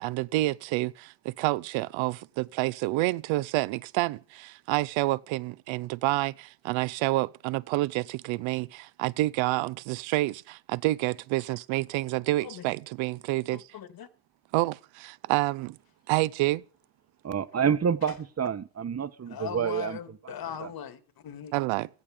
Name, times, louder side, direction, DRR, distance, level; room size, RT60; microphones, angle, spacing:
voice 1, 0.0-13.6 14.5-15.8 16.1-16.6 21.5-21.9, right 19 dB, 75° right, 0.9 m, -28 dB
voice 2, 12.4-12.7 13.5-14.1 18.0-18.1 19.3-21.5, left 9 dB, 50° left, 2.3 m, -40 dB
voice 3, 17.2-20.0 20.6-20.7, right 7 dB, 30° right, 1.2 m, -28 dB
16.5 x 14.5 x 5.2 m
supercardioid pair, 95°, 47 cm